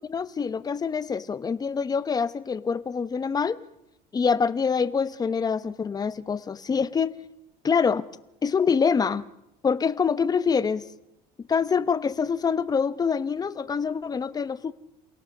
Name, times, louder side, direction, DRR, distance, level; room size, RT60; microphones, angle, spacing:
voice 1, 0.1-3.6 4.1-7.2 7.6-8.0 8.4-9.2 9.6-10.8 11.5-14.7, left 6 dB, 20° left, 0.8 m, -25 dB
28.0 x 17.5 x 6.5 m
cardioid pair, 135°, 17 cm